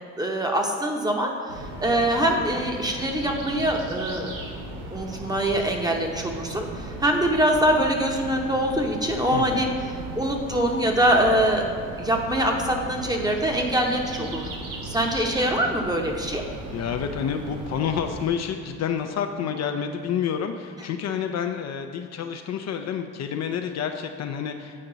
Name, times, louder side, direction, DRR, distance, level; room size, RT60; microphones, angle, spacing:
voice 1, 0.2-4.3 4.9-9.7 10.1-11.7 12.0-14.4 14.9-16.4, right 1 dB, 10° right, 2 dB, 0.8 m, -24 dB
sound 1, 1.5-18.3, right 2 dB, 85° right, 1.1 m, -37 dB
voice 2, 9.3-9.7 16.7-24.9, left 8 dB, 55° left, 6 dB, 0.5 m, -29 dB
8.6 x 4.4 x 3.9 m, 2.2 s
cardioid pair, 95°, 33 cm